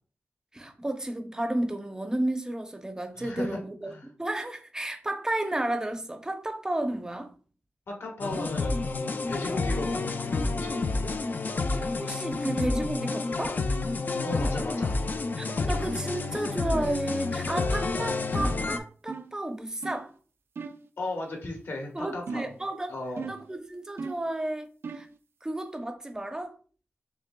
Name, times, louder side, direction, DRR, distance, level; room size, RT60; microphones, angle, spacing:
voice 1, 0.5-3.9 4.2-7.3 11.8-13.6 15.4-20.1 21.9-22.9 23.3-24.7 24.9-25.1 25.4-26.6, right 1 dB, 15° right, 0.6 m, -32 dB
voice 2, 3.2-3.6 3.9-4.1 7.9-11.1 14.2-15.1 21.0-22.5 22.9-23.3, left 2 dB, 70° left, 1.4 m, -36 dB
sound 1, 8.2-18.8, left 3 dB, 45° left, 0.4 m, -29 dB
sound 2, 18.4-18.7 19.1-19.4 19.8-20.1 20.6-20.9 22.3-22.7 23.2-23.5 24.0-24.3 24.8-25.2, right 4 dB, 65° right, 0.4 m, -38 dB
6.5 x 3.2 x 2.2 m
wide cardioid pair, 125°, 4 cm